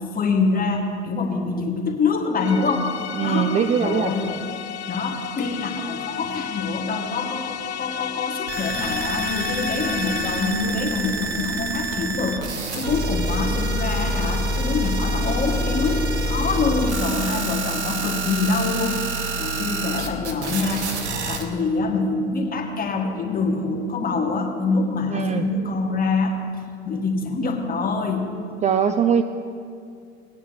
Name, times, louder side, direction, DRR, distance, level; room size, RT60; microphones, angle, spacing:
voice 1, 0.1-2.9 3.2-3.5 3.8-4.5 4.9-19.0 19.4-20.8 21.3-26.4 26.9-28.3, left 4 dB, 25° left, 1 dB, 1.7 m, -25 dB
sound 1, 2.4-10.8, left 9 dB, 80° left, 0.6 m, -32 dB
voice 2, 3.2-4.4 25.1-25.5 28.6-29.2, right 7 dB, 20° right, 8 dB, 0.4 m, -21 dB
sound 2, 8.5-21.4, right 2 dB, 85° right, 1.2 m, -27 dB
19.0 x 9.2 x 2.9 m, 2.3 s
figure-of-eight pair, 75°, 33 cm